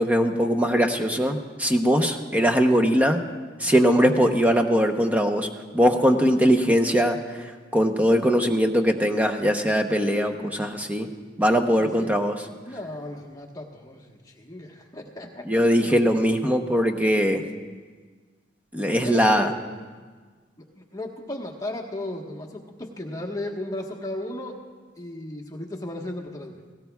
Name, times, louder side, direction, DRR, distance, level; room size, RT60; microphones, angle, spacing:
voice 1, 0.0-3.2 3.6-5.5 5.7-7.2 7.7-11.1 11.4-12.4 15.4-17.4 18.7-19.5, equal, 10° right, 5 dB, 0.8 m, -21 dB
voice 2, 11.6-12.1 12.5-15.9 19.0-19.5 20.7-24.6 25.0-26.6, left 1 dB, 20° left, 1 dB, 1.3 m, -35 dB
18.0 x 17.5 x 2.3 m, 1.5 s
head